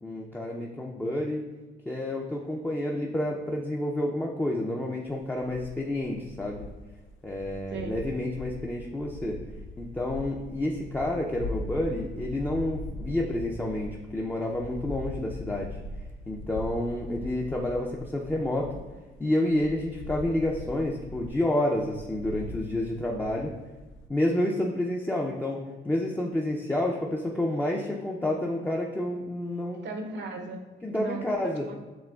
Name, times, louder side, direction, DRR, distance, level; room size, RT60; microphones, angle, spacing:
voice 1, 0.0-1.4 1.9-6.7 7.2-9.4 9.8-15.8 16.3-18.7 19.2-23.5 24.1-25.6 25.8-29.8 30.8-31.7, left 1 dB, 10° left, -2 dB, 0.4 m, -29 dB
sound 1, 5.0-19.2 19.5-24.1, left 1 dB, 80° left, 0.4 m, -41 dB
voice 2, 29.8-30.6 31.0-31.8, right 3 dB, 65° right, 4 dB, 0.7 m, -37 dB
7.4 x 2.9 x 2.3 m, 1.2 s
cardioid pair, 90°, 20 cm